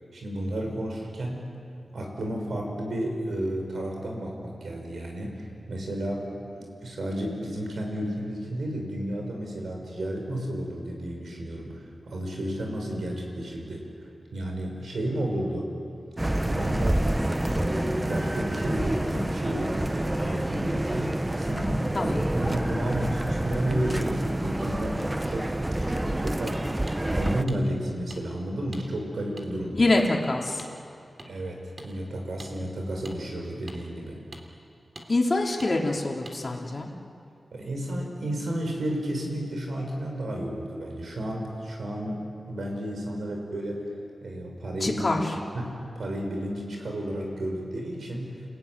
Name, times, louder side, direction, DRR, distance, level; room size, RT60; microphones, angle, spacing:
voice 1, 0.1-1.4 1.9-13.9 14.3-15.7 16.4-17.1 17.5-21.1 21.4-25.5 25.9-26.6 27.1-29.8 31.2-34.2 37.5-43.9 44.2-45.2 45.5-48.4, right 1 dB, 80° right, 1 dB, 6.2 m, -32 dB
sound 1, 16.2-27.4, right 1 dB, 15° right, 0.8 m, -28 dB
voice 2, 21.9-22.3 29.7-30.6 35.1-36.9 44.8-45.2, left 2 dB, 40° left, 0 dB, 3.4 m, -25 dB
sound 2, 26.9-27.0 27.5-27.6 28.1-28.2 28.7-28.9 29.4-29.5 30.0-30.1 30.6-30.7 31.2-31.3 31.8-31.9 32.4-32.5 33.1-33.2 33.7-33.8 34.3-34.4 35.0-35.1 35.6-35.7 36.3-36.4, right 1 dB, 35° right, 3.1 m, -43 dB
29.5 x 17.5 x 9.7 m, 2.5 s
wide cardioid pair, 110°, 0 cm